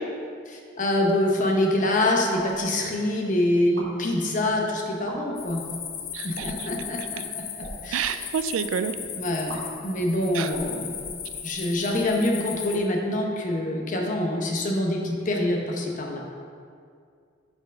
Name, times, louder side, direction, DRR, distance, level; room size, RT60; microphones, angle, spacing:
voice 1, 0.5-5.6 6.2-7.4 7.8-8.1 9.1-9.6 9.8-10.9 11.4-16.2, left 1 dB, 40° left, 1 dB, 0.8 m, -25 dB
sound 1, 2.3-2.6 3.6-3.9 4.9-5.2 6.3-6.7 7.5-7.8 9.5-9.6 10.4-11.6, right 1 dB, 65° right, 1.3 m, -41 dB
sound 2, 5.4-12.8, left 8 dB, 70° left, 0.6 m, -37 dB
voice 2, 6.1-6.7 7.9-8.9 10.3-10.5, right 8 dB, 80° right, 11 dB, 0.3 m, -28 dB
5.8 x 4.5 x 5.2 m, 2.2 s
head